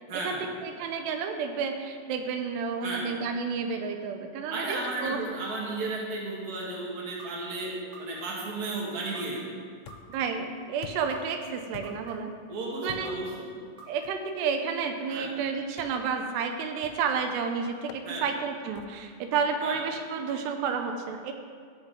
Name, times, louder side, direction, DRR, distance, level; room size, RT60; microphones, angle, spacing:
voice 1, 0.1-0.4 2.8-3.1 4.5-7.7 8.0-9.4 12.5-13.5 15.1-15.3 18.0-18.3 19.6-19.8, right 2 dB, 30° right, -4 dB, 1.8 m, -34 dB
voice 2, 0.6-5.2 10.1-12.3 12.8-13.1 13.9-21.3, right 6 dB, 85° right, 5 dB, 2.8 m, -31 dB
sound 1, 7.2-7.3 7.9-8.4 9.1-9.2 9.9-10.4 11.1-11.2 11.8-12.3 13.0-13.1 13.8-14.3, right 5 dB, 55° right, 1.4 m, -47 dB
sound 2, 9.9-10.3 10.8-11.3 11.7-12.2 12.9-13.3 14.0-14.3 15.8-16.1 16.8-17.2 17.9-18.1 18.8-19.1, left 8 dB, 80° left, 2.3 m, -46 dB
16.0 x 6.3 x 5.1 m, 2.1 s
omnidirectional pair, 4.8 m